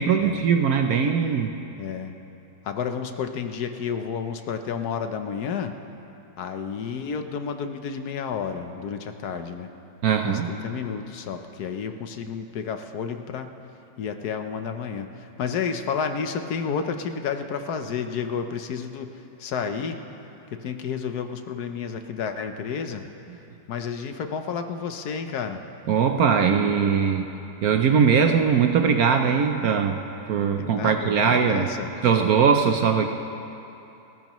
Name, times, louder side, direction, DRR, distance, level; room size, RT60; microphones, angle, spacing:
voice 1, 0.0-1.5 10.0-10.5 25.9-27.3 27.6-30.0 30.3-31.7 32.0-33.1, right 6 dB, 65° right, 5 dB, 1.0 m, -20 dB
voice 2, 1.8-2.2 2.6-5.7 6.4-9.7 10.2-13.5 14.0-20.0 20.5-23.1 23.7-25.6 30.6-31.9, left 6 dB, 60° left, 7 dB, 1.2 m, -31 dB
30.0 x 14.0 x 3.1 m, 2.9 s
omnidirectional pair, 2.1 m